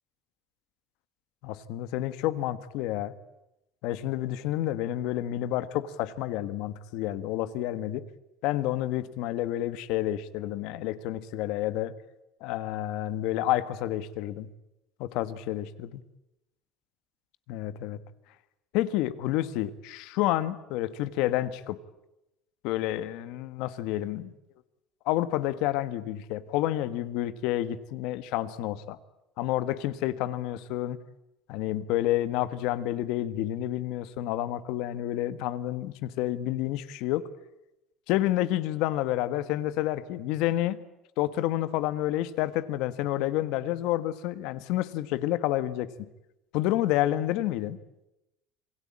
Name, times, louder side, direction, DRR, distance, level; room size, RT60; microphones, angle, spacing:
voice 1, 1.4-3.1 3.8-8.0 8.4-11.9 12.4-14.5 15.0-15.9 17.5-18.0 18.7-21.8 22.6-24.3 25.0-29.0 29.4-31.0 31.5-37.3 38.1-40.8 41.2-45.9 46.5-47.8, left 14 dB, 65° left, 14 dB, 1.4 m, -29 dB
27.5 x 21.0 x 8.7 m, 0.92 s
cardioid pair, 170°, 0 cm